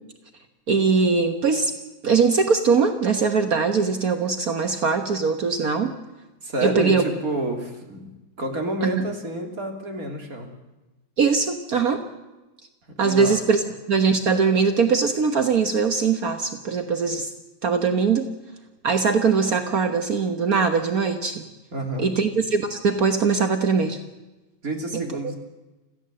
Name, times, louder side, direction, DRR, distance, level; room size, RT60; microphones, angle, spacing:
voice 1, 0.7-1.7 2.0-5.9 6.6-7.0 8.8-9.0 11.2-12.0 13.0-13.6 13.9-17.3 17.6-18.3 18.8-21.4 22.0-24.0 24.9-25.0, right 5 dB, 70° right, 6 dB, 0.8 m, -21 dB
voice 2, 6.4-8.1 8.4-10.5 13.0-13.3 21.7-22.1 24.6-25.3, right 1 dB, 30° right, 3 dB, 3.3 m, -29 dB
27.0 x 16.0 x 7.7 m, 1.1 s
omnidirectional pair, 3.5 m